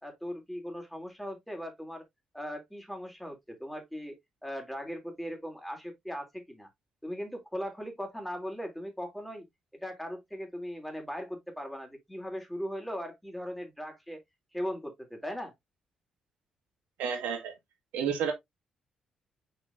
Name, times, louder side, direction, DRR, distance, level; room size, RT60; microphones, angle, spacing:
voice 1, 0.0-2.0 2.3-6.7 7.0-9.4 9.8-14.2 14.5-15.5, equal, 5° left, 3.3 m, -39 dB
voice 2, 17.0-17.5 17.9-18.3, right 7 dB, 65° right, 2.0 m, -30 dB
6.4 x 6.0 x 2.7 m
figure-of-eight pair, 40°, 3 cm